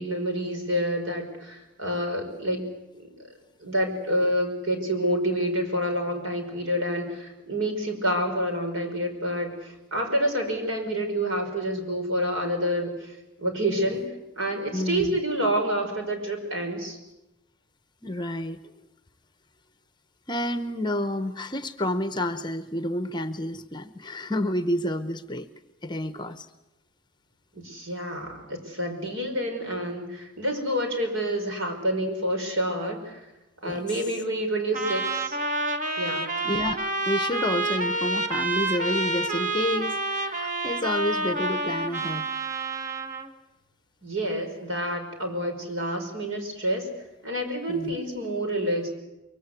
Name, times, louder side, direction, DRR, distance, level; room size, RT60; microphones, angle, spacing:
voice 1, 0.0-2.7 3.0-3.1 3.6-14.0 14.4-17.0 27.5-33.2 33.6-35.4 36.0-36.3 44.0-46.9 47.2-48.9, equal, 65° right, 4 dB, 5.5 m, -28 dB
voice 2, 14.7-15.2 18.0-18.6 20.3-25.5 25.8-26.5 33.6-33.8 36.4-36.8 37.1-42.3 47.7-48.0, left 1 dB, 20° left, 10 dB, 0.8 m, -29 dB
Trumpet, 34.7-43.3, right 2 dB, 35° right, 1.4 m, -28 dB
24.5 x 23.5 x 8.2 m, 0.93 s
head